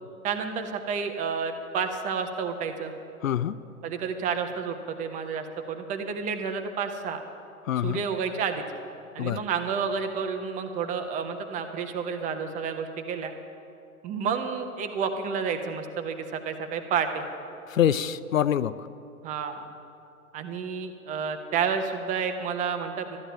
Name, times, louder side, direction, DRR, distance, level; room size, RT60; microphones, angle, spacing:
voice 1, 0.2-2.9 3.8-7.2 7.8-8.6 9.1-13.3 14.0-17.2 19.2-19.6 20.3-23.2, right 6 dB, 15° right, 7 dB, 0.8 m, -30 dB
voice 2, 3.2-3.6 7.7-8.0 9.2-9.4 17.7-18.7, left 10 dB, 65° left, 15 dB, 0.6 m, -25 dB
13.0 x 11.0 x 8.9 m, 2.7 s
figure-of-eight pair, 120°, 43 cm